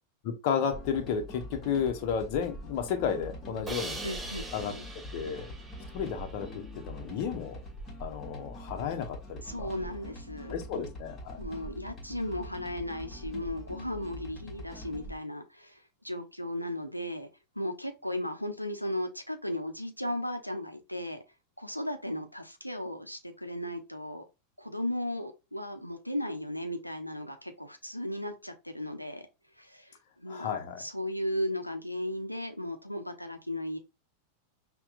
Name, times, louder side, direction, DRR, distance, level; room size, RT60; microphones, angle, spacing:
voice 1, 0.2-4.0 4.5-4.7 5.1-5.5 5.9-7.6 8.0-9.7 10.5-11.4 30.3-30.8, left 7 dB, 45° left, 0.8 m, -32 dB
sound 1, 0.6-15.2, equal, 25° left, 1.2 m, -44 dB
Crash cymbal, 3.7-6.7, right 3 dB, 10° right, 0.7 m, -42 dB
voice 2, 4.0-4.8 9.4-10.5 11.4-15.8 16.0-17.3 17.6-21.2 21.6-24.2 24.6-29.2 29.6-33.8, left 1 dB, 90° left, 0.6 m, -36 dB
5.7 x 2.2 x 2.5 m
figure-of-eight pair, 90°, 0 cm